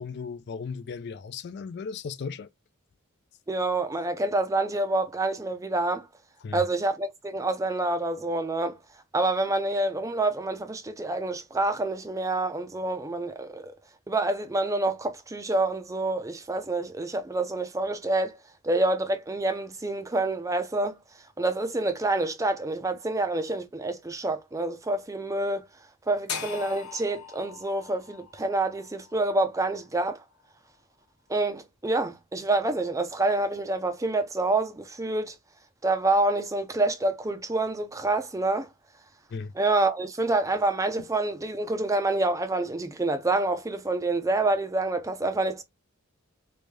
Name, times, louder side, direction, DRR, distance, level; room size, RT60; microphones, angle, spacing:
voice 1, 0.0-2.5 6.4-6.6 39.3-39.5, left 5 dB, 50° left, 0.3 m, -36 dB
voice 2, 3.5-6.1 6.5-8.8 9.1-13.7 14.1-18.4 18.6-21.0 21.4-25.7 26.1-30.2 31.3-35.3 35.8-38.7 39.6-45.6, right 2 dB, 15° right, 0.5 m, -27 dB
sound 1, 26.3-30.4, left 6 dB, 80° left, 1.0 m, -40 dB
3.2 x 2.6 x 3.3 m
head